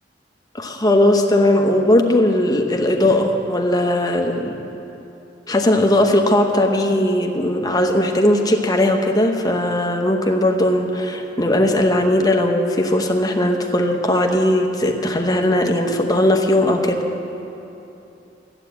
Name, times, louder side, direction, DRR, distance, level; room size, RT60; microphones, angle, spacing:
voice 1, 0.5-4.5 5.5-17.0, left 1 dB, 20° left, 3 dB, 1.0 m, -18 dB
12.0 x 9.0 x 8.3 m, 2.9 s
head